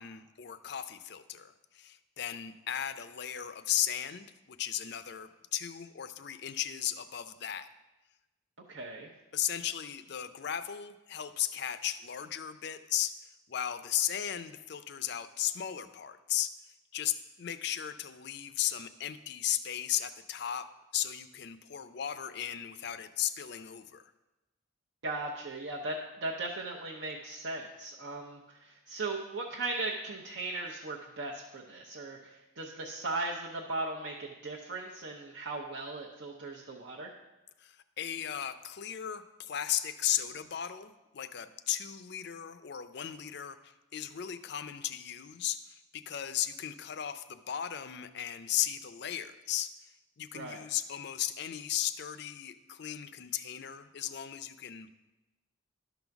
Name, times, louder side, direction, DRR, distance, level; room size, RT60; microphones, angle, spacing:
voice 1, 0.0-7.7 9.3-16.5 16.9-20.7 20.9-24.1 37.6-54.9, left 11 dB, 55° left, 11 dB, 0.5 m, -36 dB
voice 2, 8.7-9.1 25.0-37.1 50.3-50.6, right 2 dB, 70° right, -3 dB, 0.8 m, -38 dB
11.5 x 4.0 x 5.9 m, 1.0 s
head